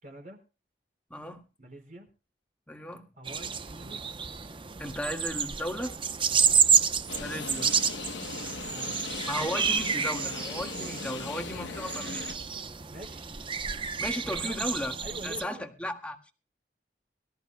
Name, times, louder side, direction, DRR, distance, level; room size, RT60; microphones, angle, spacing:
voice 1, 0.0-0.4 1.6-2.1 3.2-4.1 6.3-6.5 8.2-9.0 12.9-13.2 14.2-14.8 15.0-15.7, right 1 dB, 50° right, 3 dB, 4.6 m, -45 dB
voice 2, 1.1-1.4 2.7-3.0 4.8-6.0 7.2-7.7 9.3-12.2 14.0-14.9 15.2-16.2, left 1 dB, 5° left, 4 dB, 1.8 m, -35 dB
sound 1, 3.3-15.4, right 7 dB, 30° right, 0.8 m, -29 dB
sound 2, 7.1-12.3, left 4 dB, 90° left, 1.0 m, -39 dB
24.0 x 14.0 x 2.2 m, 0.32 s
head